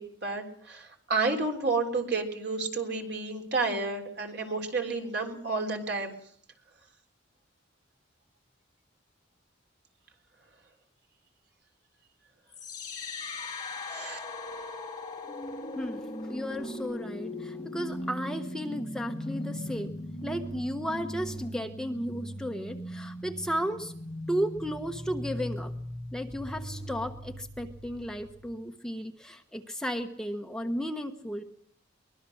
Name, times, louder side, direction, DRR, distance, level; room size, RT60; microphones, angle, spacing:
voice 1, 0.0-6.1 13.9-14.2, right 3 dB, 60° right, 2 dB, 3.6 m, -31 dB
sound 1, 12.5-28.5, left 1 dB, 20° left, 3.2 m, -39 dB
voice 2, 15.7-19.9 20.2-24.0 24.3-25.7 26.1-31.4, equal, 5° left, 4 dB, 1.1 m, -34 dB
23.5 x 20.5 x 6.5 m, 0.62 s
head